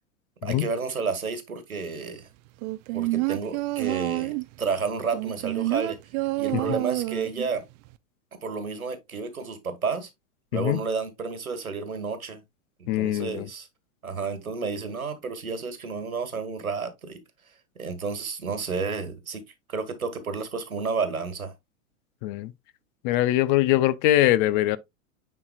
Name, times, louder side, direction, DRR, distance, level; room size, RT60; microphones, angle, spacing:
voice 1, 0.4-2.3 2.9-6.0 6.4-7.6 8.4-10.1 10.5-12.4 12.8-13.7 14.0-17.2 17.8-19.4 19.7-21.5, right 5 dB, 90° right, 1.6 m, -31 dB
sound 1, 2.6-4.5 5.1-7.5 7.9-8.0, right 20 dB, 35° right, 0.4 m, -28 dB
voice 2, 12.9-13.5 22.2-22.5 23.0-24.8, left 14 dB, 40° left, 0.6 m, -22 dB
9.4 x 4.6 x 2.3 m
hypercardioid pair, 100°, 41 cm